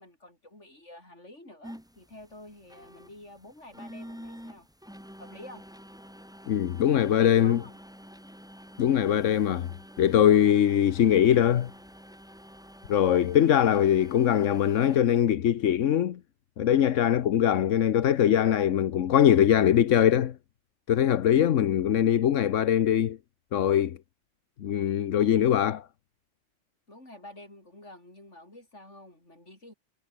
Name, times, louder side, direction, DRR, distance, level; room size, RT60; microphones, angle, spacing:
voice 1, 0.0-4.7 5.2-5.7 7.1-7.8 26.9-29.7, left 1 dB, 70° left, 8.5 m, -49 dB
sound 1, 1.6-15.0, equal, 5° right, 4.7 m, -48 dB
voice 2, 6.5-7.6 8.8-9.7 10.0-11.7 12.9-16.2 16.6-20.3 20.9-23.2 23.5-24.0 24.6-25.8, left 10 dB, 90° left, 1.2 m, -22 dB
omnidirectional pair, 1.3 m